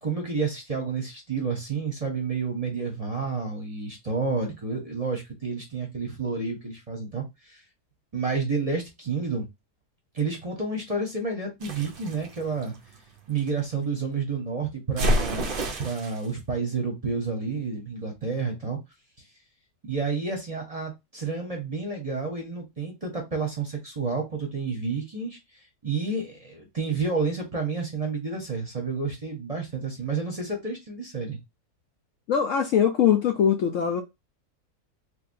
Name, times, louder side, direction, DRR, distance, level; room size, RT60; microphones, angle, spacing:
voice 1, 0.0-7.6 8.1-9.5 10.1-12.7 13.3-15.5 15.8-18.8 19.9-25.4 25.8-31.4, right 4 dB, 30° right, 0.9 m, -30 dB
Water Splash Objects falling, 11.6-13.5 15.0-16.3, equal, 50° right, 0.7 m, -28 dB
voice 2, 32.3-34.0, left 8 dB, 65° left, 0.8 m, -22 dB
3.5 x 3.3 x 2.6 m
omnidirectional pair, 1.7 m